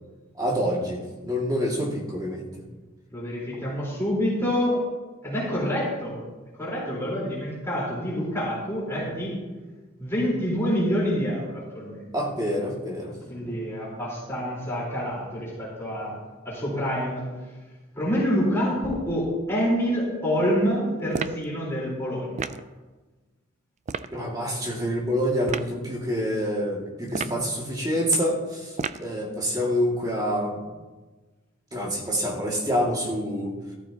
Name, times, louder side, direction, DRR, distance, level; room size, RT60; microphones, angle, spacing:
voice 1, 0.4-2.4 12.1-13.1 13.4-13.5 24.1-30.7 31.7-33.5, equal, 20° right, -3 dB, 2.1 m, -27 dB
voice 2, 3.1-4.8 5.2-6.2 6.6-9.3 10.0-12.1 13.3-16.1 16.4-17.2 18.0-22.5 27.2-27.3, equal, 10° left, -7 dB, 4.0 m, -27 dB
sound 1, 21.1-21.5 22.4-22.7 23.9-24.1 25.5-25.7 27.1-27.5 28.8-29.1, right 5 dB, 35° right, 0.3 m, -31 dB
14.0 x 13.5 x 2.9 m, 1.2 s
head